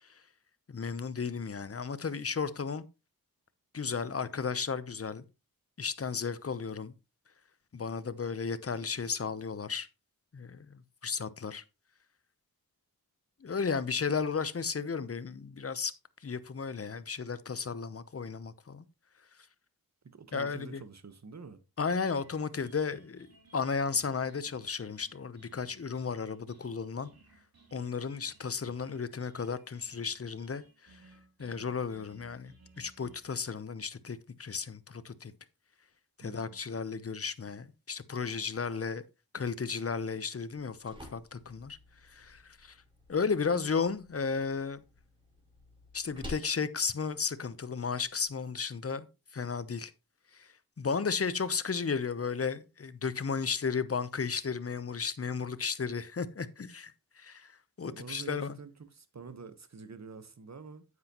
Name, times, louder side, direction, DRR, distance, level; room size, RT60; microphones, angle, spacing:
voice 1, 0.7-2.8 3.7-5.2 5.8-6.9 7.7-9.9 10.3-11.6 13.4-15.9 16.2-18.8 20.3-20.8 21.8-23.3 23.5-27.1 27.7-31.0 31.4-35.3 36.2-39.0 39.3-41.8 42.0-42.8 43.1-44.8 45.9-49.1 49.3-49.9 50.3-57.5 57.8-58.5, left 5 dB, 40° left, 0.8 m, -34 dB
voice 2, 20.0-21.6 36.2-36.6 57.8-60.8, right 5 dB, 45° right, 1.3 m, -47 dB
sound 1, 22.1-33.2, right 3 dB, 75° right, 3.1 m, -61 dB
sound 2, 40.4-48.4, left 1 dB, 15° right, 5.3 m, -51 dB
9.5 x 7.9 x 3.0 m
cardioid pair, 60°, 36 cm